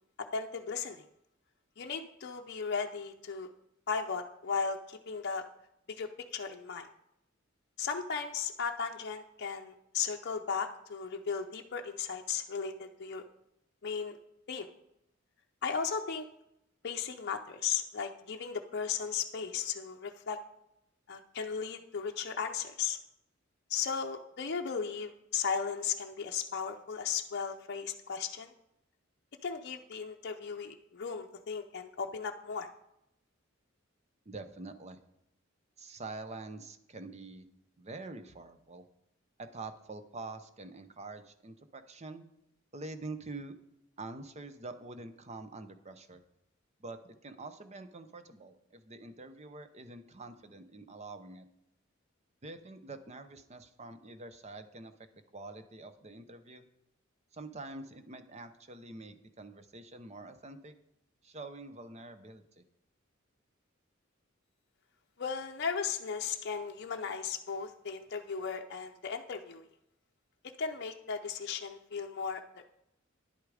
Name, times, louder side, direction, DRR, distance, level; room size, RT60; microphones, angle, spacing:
voice 1, 0.2-1.0 1.8-3.5 3.9-5.4 5.9-6.9 7.8-13.2 13.8-14.2 14.5-14.7 15.6-16.2 16.8-20.4 21.1-23.0 23.7-28.5 29.4-32.7 65.2-69.6 70.6-72.8, left 6 dB, 55° left, 3 dB, 0.6 m, -36 dB
voice 2, 34.3-35.0 35.8-37.5 37.8-38.8 39.4-42.2 42.7-43.6 44.0-46.2 46.8-51.5 52.4-54.9 55.3-56.7 57.3-60.8 61.2-62.6, right 3 dB, 35° right, 10 dB, 0.8 m, -46 dB
10.5 x 8.2 x 4.9 m, 0.80 s
head